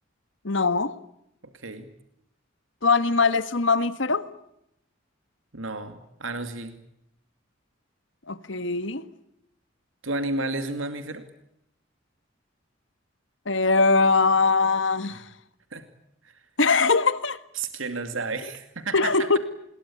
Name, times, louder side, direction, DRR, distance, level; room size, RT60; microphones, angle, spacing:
voice 1, 0.4-0.9 2.8-4.2 8.3-9.0 13.4-15.2 16.6-17.4 18.9-19.4, left 4 dB, 70° left, 13 dB, 1.6 m, -21 dB
voice 2, 1.4-1.9 5.5-6.8 10.0-11.3 15.1-15.2 15.7-15.8 16.2-16.3 17.5-19.1, right 3 dB, 85° right, 8 dB, 2.4 m, -32 dB
27.5 x 21.5 x 8.7 m, 0.78 s
head